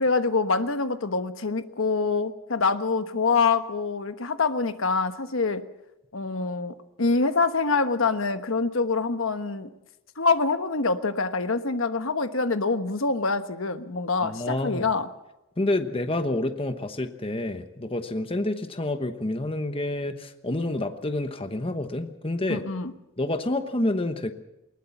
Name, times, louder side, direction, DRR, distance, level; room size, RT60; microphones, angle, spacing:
voice 1, 0.0-5.6 6.1-9.7 10.2-15.1 22.5-22.9, left 4 dB, 75° left, 9 dB, 1.2 m, -25 dB
voice 2, 14.2-14.9 15.6-22.6 23.2-24.3, left 1 dB, 25° left, 8 dB, 1.1 m, -28 dB
20.0 x 18.5 x 7.2 m, 0.93 s
head